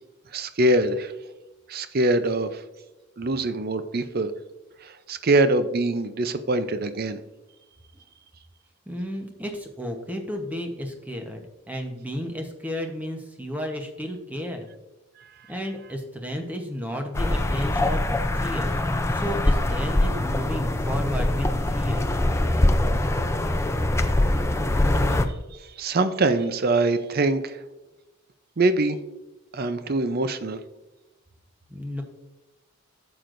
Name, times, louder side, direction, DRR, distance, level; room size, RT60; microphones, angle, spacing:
voice 1, 0.3-1.1 1.7-2.6 3.2-4.3 4.8-7.2 25.5-27.6 28.6-29.0 29.5-30.6, right 2 dB, 45° right, 11 dB, 0.5 m, -23 dB
voice 2, 8.9-14.7 15.5-18.0 18.3-18.7 19.1-22.0 31.7-32.0, equal, 5° right, 3 dB, 0.9 m, -33 dB
sound 1, 17.1-25.3, left 1 dB, 10° left, 0.4 m, -23 dB
11.0 x 7.7 x 2.6 m, 1.0 s
head